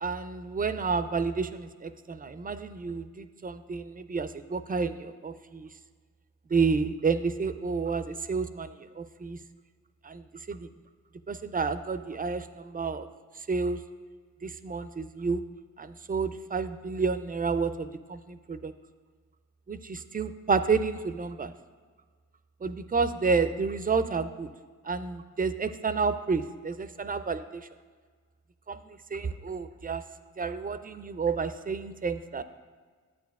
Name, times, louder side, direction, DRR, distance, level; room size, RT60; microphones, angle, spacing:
voice 1, 0.0-5.7 6.5-8.7 9.0-9.4 10.0-10.7 11.3-13.1 13.5-13.8 14.4-15.4 15.8-18.7 19.7-21.5 22.6-24.5 24.8-27.7 28.7-28.8 29.1-30.0 30.4-32.4, right 5 dB, 30° right, 11 dB, 0.4 m, -30 dB
9.4 x 8.5 x 2.3 m, 1.5 s
cardioid pair, 60°, 31 cm